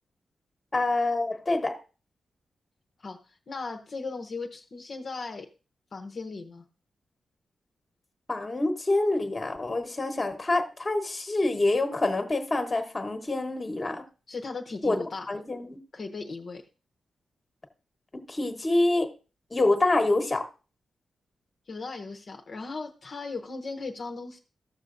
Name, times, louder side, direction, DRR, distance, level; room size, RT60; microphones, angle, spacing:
voice 1, 0.7-1.7 8.3-14.0 14.8-15.8 18.1-19.1 19.5-20.5, left 2 dB, 20° left, 6 dB, 1.2 m, -26 dB
voice 2, 3.5-5.5 5.9-6.6 14.3-15.3 15.9-16.6 21.7-24.4, left 3 dB, 45° left, 4 dB, 0.8 m, -37 dB
15.0 x 6.5 x 2.6 m, 0.34 s
wide cardioid pair, 150°, 0 cm